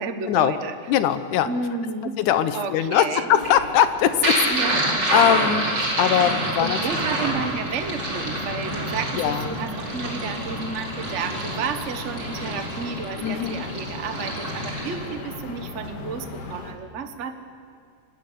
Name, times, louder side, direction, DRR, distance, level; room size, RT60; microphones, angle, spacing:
voice 1, 0.0-0.7 1.5-2.2 2.5-3.3 4.5-5.0 6.6-17.3, right 5 dB, 60° right, 7 dB, 0.7 m, -31 dB
voice 2, 0.9-1.5 2.2-4.6 5.1-5.7 6.0-6.8 9.1-9.5 13.2-13.7, left 10 dB, 80° left, 11 dB, 2.5 m, -21 dB
sound 1, 3.3-15.1, right 1 dB, 35° right, 5.0 m, -27 dB
sound 2, 6.9-16.7, left 3 dB, 50° left, 2.9 m, -37 dB
25.0 x 19.0 x 9.8 m, 2.2 s
omnidirectional pair, 3.5 m